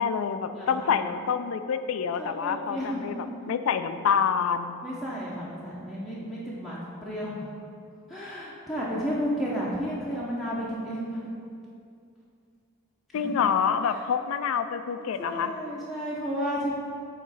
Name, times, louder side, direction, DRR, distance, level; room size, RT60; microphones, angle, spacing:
voice 1, 0.0-4.8 13.1-15.5, left 7 dB, 80° left, 10 dB, 0.3 m, -27 dB
voice 2, 0.5-1.0 2.2-3.2 3.4-3.5 4.8-7.5 8.1-11.3 13.2-13.3 15.2-16.7, equal, ahead, -8 dB, 0.6 m, -32 dB
8.3 x 3.1 x 4.0 m, 2.4 s
head